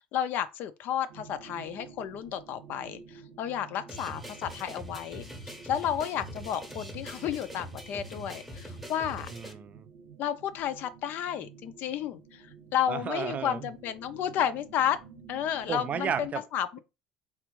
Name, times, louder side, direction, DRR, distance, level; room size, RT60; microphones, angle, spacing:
voice 1, 0.0-5.2 5.6-9.3 10.2-12.4 12.7-15.0 15.3-16.8, left 10 dB, 60° left, 0.4 m, -32 dB
sound 1, 1.1-16.3, right 6 dB, 75° right, 0.7 m, -51 dB
sound 2, 3.9-9.5, right 1 dB, ahead, 0.8 m, -43 dB
voice 2, 9.3-9.9 12.9-13.7 15.7-16.4, right 7 dB, 40° right, 0.4 m, -33 dB
3.4 x 2.5 x 3.0 m
supercardioid pair, 80°, 4 cm